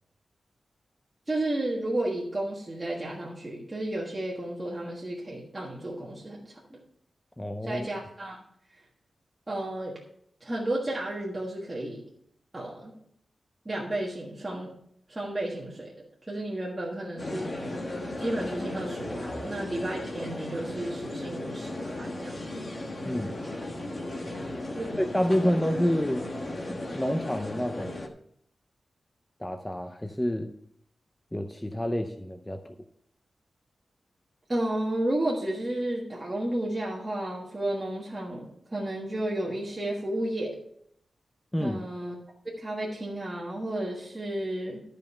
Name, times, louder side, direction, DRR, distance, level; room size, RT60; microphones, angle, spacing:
voice 1, 1.3-6.8 7.6-8.4 9.5-10.0 10.4-12.0 12.5-12.9 13.6-14.7 15.1-16.0 16.3-17.9 18.1-22.4 24.8-25.0 25.4-25.5 34.5-40.6 41.6-42.1 42.4-44.8, right 1 dB, 20° right, -4 dB, 1.5 m, -32 dB
voice 2, 7.4-7.9 23.0-23.3 24.9-26.3 26.7-28.0 29.4-30.5 31.3-32.6 41.5-41.8, equal, 10° left, 5 dB, 0.6 m, -28 dB
sound 1, 17.2-28.1, left 1 dB, 35° left, 1.2 m, -36 dB
12.5 x 5.3 x 5.6 m, 0.69 s
wide cardioid pair, 170°, 0 cm